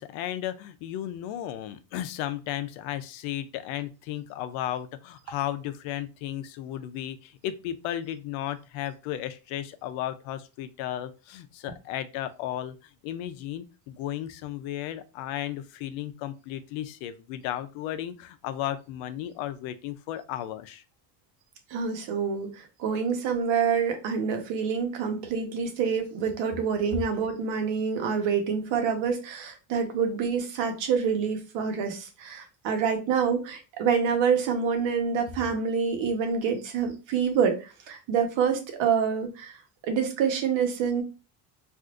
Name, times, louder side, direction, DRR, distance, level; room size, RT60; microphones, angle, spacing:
voice 1, 0.0-12.7 13.0-20.8, left 12 dB, 85° left, 0.6 m, -34 dB
voice 2, 21.7-39.5 39.8-41.0, right 6 dB, 75° right, 1.1 m, -27 dB
3.5 x 2.5 x 2.4 m
cardioid pair, 130°, 46 cm